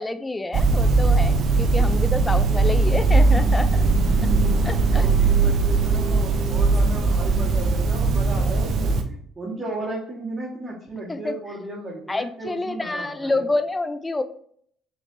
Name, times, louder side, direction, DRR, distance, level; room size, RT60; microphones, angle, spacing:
voice 1, 0.0-3.8 4.7-5.1 5.4-5.6 11.1-11.3 12.1-14.2, left 2 dB, 20° left, 11 dB, 0.5 m, -28 dB
sound 1, 0.5-9.0, right 3 dB, 50° right, 0.7 m, -19 dB
voice 2, 3.9-4.7 5.0-13.4, right 2 dB, 25° right, -5 dB, 1.6 m, -35 dB
5.7 x 3.3 x 2.7 m, 0.62 s
hypercardioid pair, 55°, 0 cm